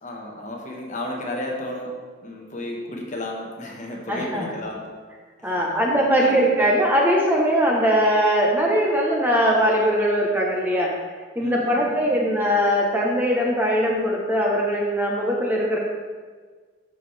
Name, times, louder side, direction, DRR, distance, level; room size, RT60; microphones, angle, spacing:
voice 1, 0.0-1.9 2.2-4.9 5.4-5.8 6.2-6.4 11.4-12.4, left 1 dB, 40° left, -1 dB, 1.2 m, -33 dB
voice 2, 4.1-4.5 5.4-10.9 11.3-15.8, equal, 10° right, -2 dB, 0.9 m, -21 dB
12.0 x 4.7 x 3.3 m, 1.5 s
head